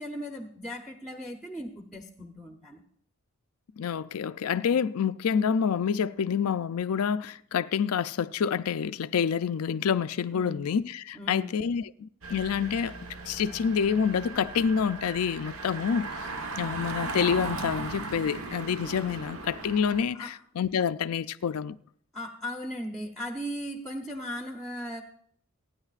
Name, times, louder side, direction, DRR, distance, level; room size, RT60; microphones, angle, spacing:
voice 1, 0.0-2.8 10.3-10.6 11.1-11.7 20.1-20.3 22.1-25.0, equal, ahead, 0.7 m, -37 dB
voice 2, 3.8-12.9 13.3-16.3 16.6-21.8, left 7 dB, 90° left, 0.4 m, -28 dB
Engine, 12.2-20.0, right 3 dB, 75° right, 1.2 m, -37 dB
Boom, 18.8-20.7, right 1 dB, 40° right, 0.8 m, -50 dB
28.0 x 9.6 x 2.4 m
head